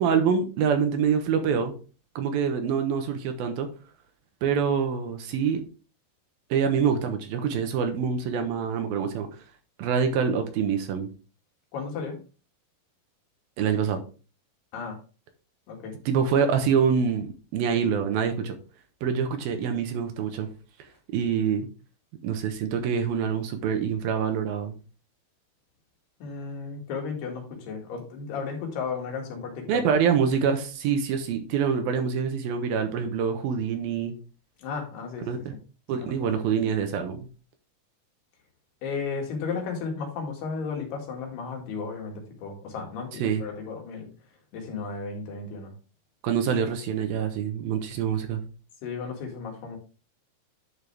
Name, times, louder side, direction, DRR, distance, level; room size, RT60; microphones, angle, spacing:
voice 1, 0.0-1.7 2.2-3.7 4.4-5.6 6.5-9.3 9.8-11.1 13.6-14.0 16.1-18.6 19.0-20.5 21.1-21.7 22.2-24.7 29.7-34.1 35.3-35.4 35.9-37.3 43.2-43.4 46.2-48.4, right 7 dB, 70° right, 6 dB, 2.9 m, -25 dB
voice 2, 11.7-12.2 14.7-15.0 15.7-15.9 26.2-29.8 34.6-35.5 36.0-36.1 38.8-44.1 44.5-45.7 48.8-49.8, left 5 dB, 85° left, 1 dB, 4.1 m, -34 dB
11.0 x 5.6 x 3.4 m, 0.34 s
omnidirectional pair, 4.5 m